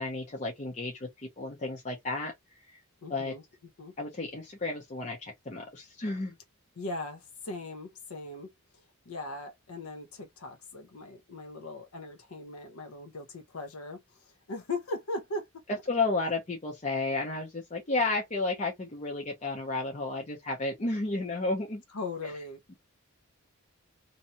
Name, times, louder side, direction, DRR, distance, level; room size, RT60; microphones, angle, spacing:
voice 1, 0.0-2.3 2.7-2.8 3.1-3.3 4.0-6.3 15.9-21.8 22.2-22.3 22.7-22.8, left 3 dB, 30° left, 0.6 m, -32 dB
voice 2, 3.0-3.4 3.8-3.9 6.8-8.5 9.1-15.6 21.9-22.7, left 2 dB, 70° left, 0.6 m, -39 dB
2.7 x 2.3 x 2.6 m
head